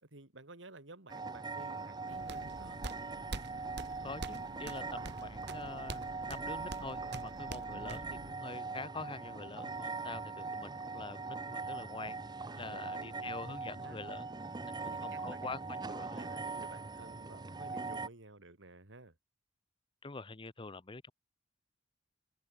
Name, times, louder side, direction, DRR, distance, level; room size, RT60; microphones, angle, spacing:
voice 1, 0.0-2.8 12.5-14.0 14.7-15.4 15.9-19.1, right 2 dB, 80° right, 3.0 m, -53 dB
sound 1, 1.1-18.1, right 4 dB, 20° right, 0.6 m, -41 dB
sound 2, 2.1-8.3, right 2 dB, 65° right, 2.1 m, -46 dB
voice 2, 4.0-6.0 6.3-12.2 12.6-14.3 14.8-15.6 15.9-16.3 20.0-21.1, left 3 dB, 25° left, 0.8 m, -45 dB
head